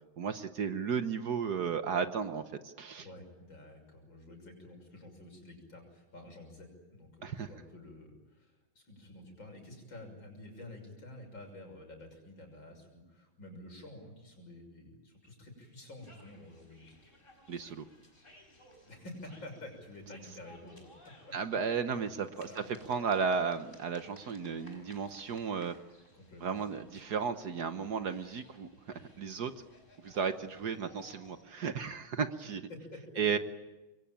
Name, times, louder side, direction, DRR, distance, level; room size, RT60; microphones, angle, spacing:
voice 1, 0.2-3.0 7.2-7.5 17.5-17.9 21.3-25.7 26.4-29.5 30.0-32.7 33.2-33.4, right 6 dB, 55° right, 10 dB, 1.5 m, -34 dB
voice 2, 3.0-17.0 18.8-20.9 21.3-21.4 22.1-22.2 22.5-22.8 24.6-25.0 26.1-26.6 32.7-33.4, left 1 dB, 70° left, 4 dB, 7.0 m, -50 dB
sound 1, 16.0-31.4, left 1 dB, 25° left, 4.9 m, -58 dB
26.0 x 22.5 x 8.9 m, 1.1 s
omnidirectional pair, 2.2 m